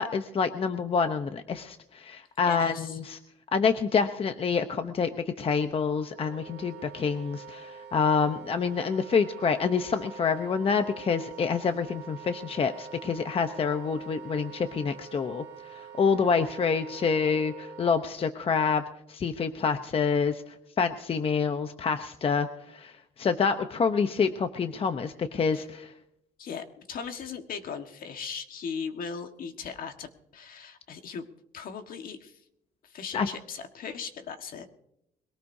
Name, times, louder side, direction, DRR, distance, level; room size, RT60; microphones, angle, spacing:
voice 1, 0.0-3.2 3.5-5.1 5.4-15.4 15.7-18.8 19.1-20.4 20.8-25.9 33.1-33.3, left 5 dB, 35° left, 8 dB, 0.9 m, -27 dB
voice 2, 2.4-3.0 25.5-25.7 26.4-31.2 31.5-32.4 32.8-34.7, left 6 dB, 55° left, 6 dB, 1.6 m, -38 dB
Wind instrument woodwind instrument, 6.1-18.0, right 7 dB, 80° right, 2.4 m, -45 dB
22.0 x 18.0 x 2.7 m, 0.82 s
cardioid pair, 110°, 17 cm